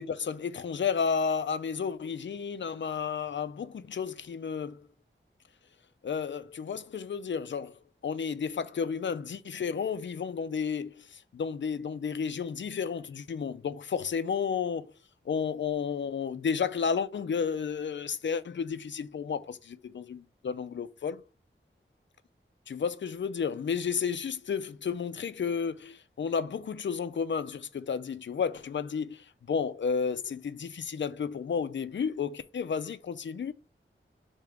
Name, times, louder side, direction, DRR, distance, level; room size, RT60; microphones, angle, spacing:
voice 1, 0.0-4.9 6.0-14.9 15.3-21.2 22.7-33.5, left 6 dB, 60° left, 0.4 m, -32 dB
3.5 x 2.9 x 4.6 m
wide cardioid pair, 70°, 21 cm